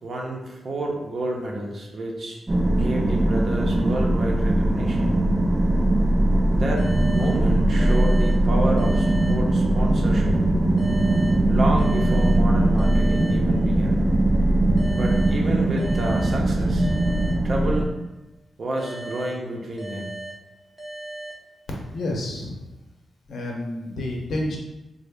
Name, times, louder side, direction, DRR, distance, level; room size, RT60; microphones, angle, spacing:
voice 1, 0.0-2.4 2.7-5.2 6.5-10.4 11.5-14.0 15.0-16.9 17.4-17.9 18.6-20.1, right 1 dB, 55° right, 0 dB, 0.7 m, -30 dB
sound 1, 2.5-17.8, right 1 dB, 25° right, 0.4 m, -20 dB
sound 2, 6.8-10.1 10.8-14.1 14.8-18.1 18.8-22.1, right 2 dB, 15° left, 0.8 m, -39 dB
voice 2, 21.9-22.5 23.3-24.6, left 1 dB, 75° left, -1 dB, 0.8 m, -29 dB
3.7 x 2.1 x 3.5 m, 0.99 s
cardioid pair, 85°, 0 cm